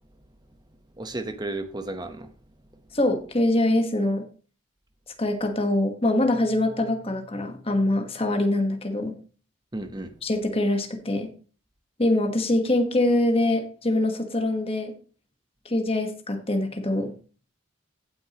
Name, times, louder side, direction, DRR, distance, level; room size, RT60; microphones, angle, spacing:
voice 1, 1.0-2.3 2.7-2.8 9.7-10.2, right 2 dB, 20° right, 0.9 m, -33 dB
voice 2, 2.9-4.3 5.2-9.1 10.2-11.3 12.0-14.9 15.6-17.1, left 1 dB, 25° left, 1.3 m, -24 dB
16.0 x 6.2 x 2.9 m
head